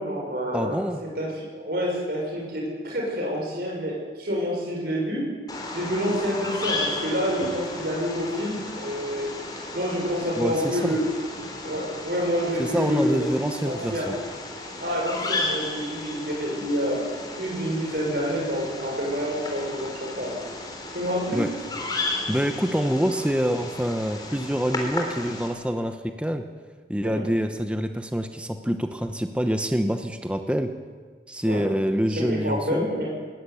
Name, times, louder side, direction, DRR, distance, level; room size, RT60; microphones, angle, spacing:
voice 1, 0.0-0.7 1.0-5.2 5.7-9.3 9.7-11.0 11.6-13.3 13.6-14.1 14.8-20.3 20.9-21.4 27.0-27.2 31.5-31.6 32.1-33.1, equal, 55° right, -2 dB, 6.5 m, -28 dB
voice 2, 0.5-1.0 10.4-10.8 12.6-14.2 21.3-21.5 22.3-26.4 26.9-30.7 31.3-32.9, equal, 5° right, 6 dB, 1.0 m, -26 dB
Bird vocalization bird call bird song, 5.5-25.5, left 2 dB, 20° left, 3.6 m, -34 dB
20.5 x 19.5 x 8.5 m, 1.5 s
head